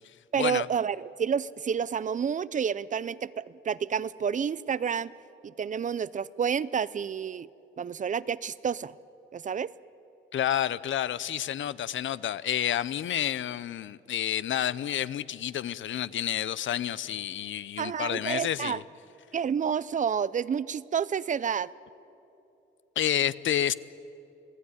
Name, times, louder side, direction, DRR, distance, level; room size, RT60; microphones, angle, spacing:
voice 1, 0.3-5.1 5.4-7.5 7.8-8.9 9.3-9.7 17.8-18.8 19.3-21.7, right 7 dB, 40° right, 0.5 m, -29 dB
voice 2, 10.3-18.8 23.0-23.7, left 10 dB, 75° left, 0.6 m, -29 dB
27.5 x 18.0 x 9.8 m
wide cardioid pair, 150°, 20 cm